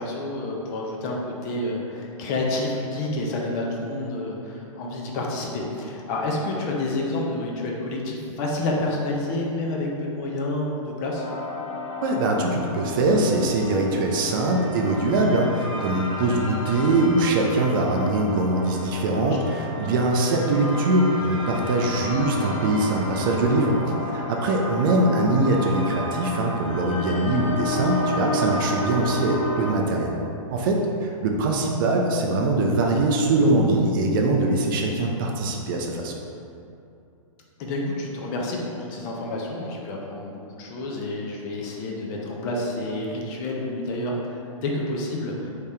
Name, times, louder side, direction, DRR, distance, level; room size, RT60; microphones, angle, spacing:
voice 1, 0.0-11.2 19.2-19.8 37.6-45.5, left 2 dB, 30° left, -1 dB, 0.5 m, -29 dB
sound 1, 11.1-29.7, equal, 60° left, 1.2 m, -32 dB
voice 2, 12.0-23.8 24.1-30.2 30.5-36.1, right 2 dB, 40° right, 1 dB, 0.4 m, -22 dB
3.5 x 2.8 x 3.3 m, 2.7 s
hypercardioid pair, 145°, 18 cm